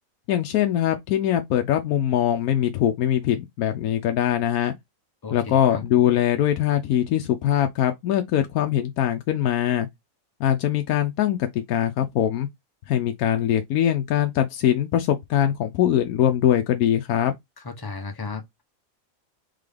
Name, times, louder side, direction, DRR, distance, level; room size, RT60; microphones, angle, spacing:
voice 1, 0.3-4.7 5.3-9.9 10.4-12.5 12.9-17.3, left 11 dB, 85° left, 1.1 m, -22 dB
voice 2, 5.2-5.8 17.6-18.6, left 4 dB, 30° left, 0.4 m, -35 dB
3.8 x 3.7 x 3.4 m
omnidirectional pair, 1.5 m